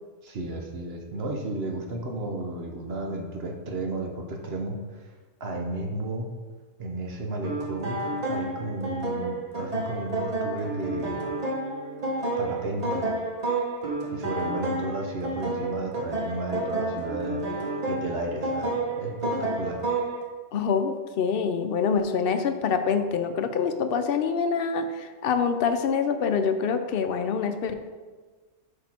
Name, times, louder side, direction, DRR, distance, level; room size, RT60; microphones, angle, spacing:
voice 1, 0.2-4.8 5.4-6.3 6.8-8.0 8.3-11.2 12.4-13.1 14.1-17.4 17.9-19.8, right 2 dB, 65° right, 2 dB, 1.2 m, -33 dB
sound 1, 7.4-20.2, right 2 dB, 35° right, 1.1 m, -30 dB
voice 2, 20.5-27.7, left 6 dB, 65° left, 8 dB, 0.8 m, -25 dB
6.2 x 5.2 x 4.3 m, 1.4 s
omnidirectional pair, 1.1 m